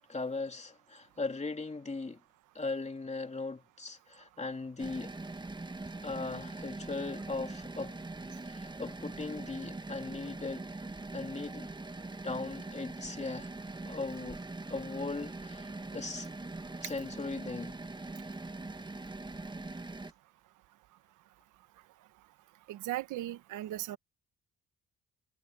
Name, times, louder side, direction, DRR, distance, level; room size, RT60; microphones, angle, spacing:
voice 1, 0.1-2.2 2.5-5.1 6.0-8.0 8.5-10.7 11.1-11.7 12.2-13.5 13.8-14.4 14.7-16.3 16.8-17.8, left 3 dB, 20° left, 2.9 m, -38 dB
sound 1, 4.8-20.1, right 2 dB, 15° right, 1.4 m, -42 dB
voice 2, 22.7-24.0, right 14 dB, 90° right, 1.3 m, -37 dB
cardioid pair, 90°, 30 cm